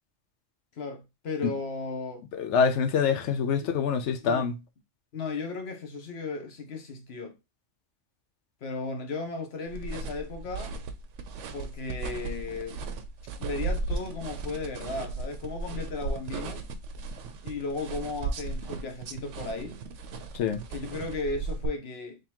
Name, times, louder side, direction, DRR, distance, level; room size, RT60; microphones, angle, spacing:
voice 1, 0.8-2.2 3.5-3.7 4.2-4.5 5.1-7.4 8.6-10.8 11.5-12.9 13.4-16.6 17.4-19.8 20.7-22.2, left 3 dB, 60° left, 1.2 m, -35 dB
voice 2, 2.4-4.6 20.3-20.6, left 6 dB, 75° left, 0.9 m, -25 dB
sound 1, 9.7-21.7, right 3 dB, 80° right, 0.9 m, -36 dB
3.8 x 3.3 x 2.9 m
omnidirectional pair, 1.2 m